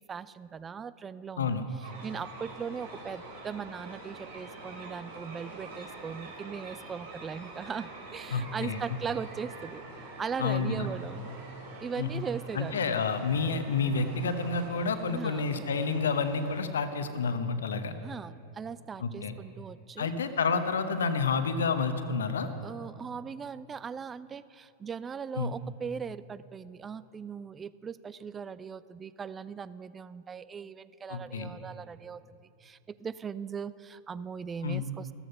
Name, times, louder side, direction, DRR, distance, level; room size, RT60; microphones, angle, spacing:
voice 1, 0.0-1.6 2.0-9.8 10.2-11.3 11.8-12.8 15.1-15.6 18.0-20.1 22.6-35.1, right 6 dB, 20° right, 17 dB, 0.4 m, -39 dB
sound 1, 1.8-16.6, right 2 dB, 60° right, 3.6 m, -46 dB
voice 2, 8.3-8.8 10.4-10.9 12.0-12.1 12.5-17.9 19.0-19.3 20.0-22.5 25.4-25.5 31.1-31.5 34.6-34.8, left 4 dB, 65° left, 10 dB, 1.0 m, -29 dB
14.0 x 14.0 x 5.5 m, 2.7 s
figure-of-eight pair, 90°, 0 cm